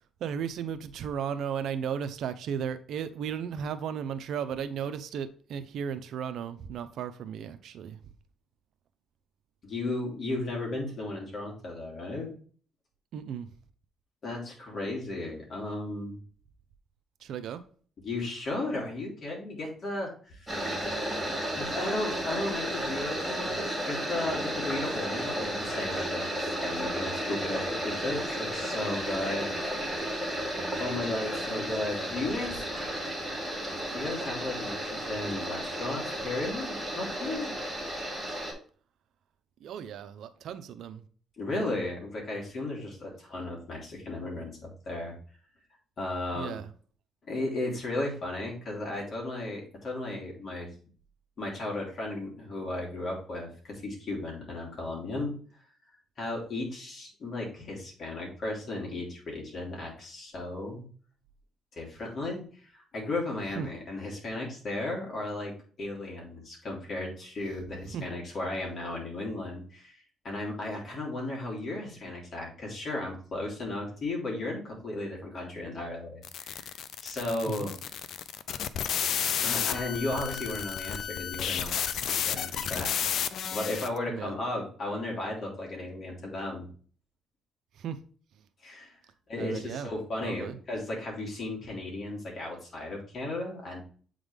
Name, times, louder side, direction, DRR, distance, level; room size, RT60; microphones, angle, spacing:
voice 1, 0.2-8.0 13.1-13.5 17.2-17.6 31.6-31.8 39.6-41.0 46.3-46.7 63.6-63.7 67.9-68.0 77.5-77.7 84.1-84.3 87.8-88.0 89.4-89.9 90.2-90.6, right 8 dB, 75° right, 0.6 m, -35 dB
voice 2, 9.6-12.3 14.2-16.2 18.0-20.7 21.6-29.6 30.8-33.2 33.9-37.5 41.4-45.2 46.0-46.6 47.2-50.7 51.4-55.4 56.2-60.8 61.8-76.7 77.0-77.8 79.4-83.2 83.5-86.7 88.6-89.0 89.3-93.8, left 2 dB, 50° left, 3.0 m, -35 dB
sound 1, 20.5-38.5, right 1 dB, 10° right, 2.4 m, -33 dB
sound 2, 76.2-84.0, left 8 dB, 70° left, 0.4 m, -32 dB
8.1 x 3.8 x 3.3 m
cardioid pair, 90°, 0 cm